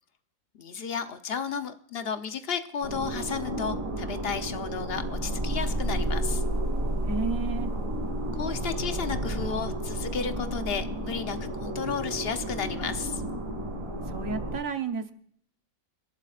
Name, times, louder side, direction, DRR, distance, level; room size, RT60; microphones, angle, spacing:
voice 1, 0.6-6.4 8.3-13.2, left 6 dB, 50° left, 9 dB, 1.0 m, -33 dB
sound 1, 2.8-14.5, right 1 dB, 35° right, 5.2 m, -31 dB
voice 2, 7.0-7.7 14.1-15.1, right 4 dB, 65° right, 7 dB, 1.4 m, -32 dB
28.5 x 12.0 x 2.5 m, 0.62 s
omnidirectional pair, 1.5 m